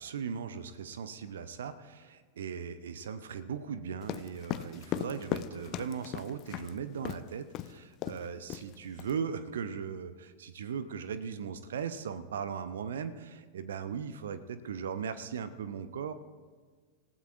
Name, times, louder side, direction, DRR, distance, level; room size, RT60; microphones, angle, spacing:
voice 1, 0.0-16.1, right 7 dB, 65° right, 13 dB, 0.7 m, -38 dB
sound 1, 4.0-6.7 7.0-7.2 7.5-7.7 8.0-8.2 8.5-9.1, left 13 dB, 35° left, 0.6 m, -37 dB
26.0 x 16.0 x 2.5 m, 1.5 s
figure-of-eight pair, 90°, 0 cm